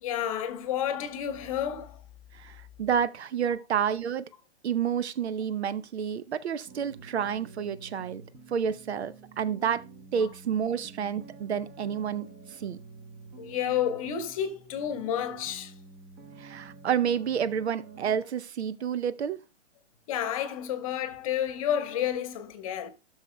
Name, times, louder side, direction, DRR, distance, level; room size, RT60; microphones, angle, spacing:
voice 1, 0.0-2.0 13.4-15.7 20.1-22.9, left 9 dB, 30° left, 1.0 m, -30 dB
voice 2, 2.3-4.2 4.6-8.2 8.5-9.8 10.1-12.8 16.4-19.4, right 8 dB, 65° right, 0.7 m, -29 dB
sound 1, 6.7-18.2, right 4 dB, 20° right, 1.0 m, -49 dB
14.0 x 6.5 x 2.2 m
hypercardioid pair, 155°, 35 cm